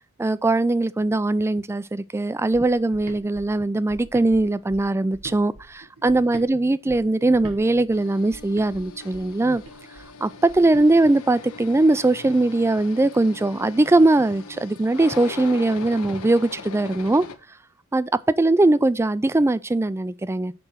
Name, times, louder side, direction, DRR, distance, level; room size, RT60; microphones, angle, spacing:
voice 1, 0.2-9.6 10.2-17.2 17.9-18.1 18.4-20.5, right 2 dB, 10° right, 0.3 m, -20 dB
sound 1, 2.5-6.5 6.9-10.9, right 2 dB, 80° right, 1.4 m, -44 dB
sound 2, 7.9-17.3, left 4 dB, 75° left, 0.9 m, -40 dB
6.7 x 4.3 x 6.2 m
head